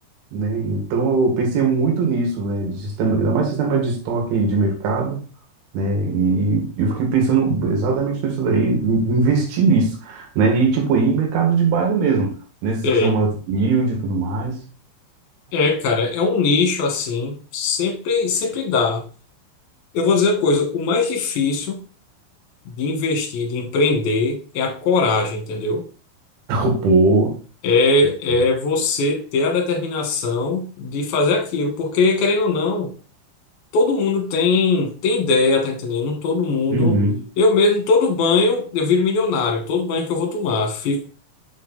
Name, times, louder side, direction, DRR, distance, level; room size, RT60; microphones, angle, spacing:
voice 1, 0.3-5.2 5.7-12.3 12.6-14.6 26.5-27.4 36.7-37.2, right 3 dB, 80° right, 4.2 m, -20 dB
voice 2, 15.5-19.0 19.9-21.8 22.7-25.8 27.6-32.9 33.7-37.0 37.4-41.1, left 3 dB, 60° left, 3.2 m, -20 dB
7.7 x 4.3 x 4.1 m
omnidirectional pair, 5.4 m